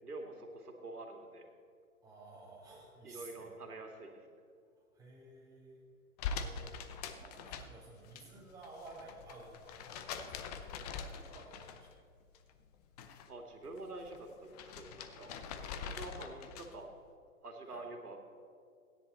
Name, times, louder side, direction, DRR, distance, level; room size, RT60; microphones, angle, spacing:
voice 1, 0.0-1.5 3.0-4.4 13.3-15.3 15.9-16.9 17.4-18.2, right 2 dB, 90° right, 3 dB, 2.2 m, -47 dB
voice 2, 2.0-3.5 4.7-5.8 6.2-6.8 7.1-11.9 17.7-17.8, right 2 dB, 10° right, -6 dB, 3.7 m, -54 dB
sound 1, 6.2-8.2 8.5-12.0 12.3-13.3 13.6-16.9, left 6 dB, 25° left, 0.7 m, -44 dB
15.5 x 10.0 x 4.2 m, 2.4 s
hypercardioid pair, 135°, 44 cm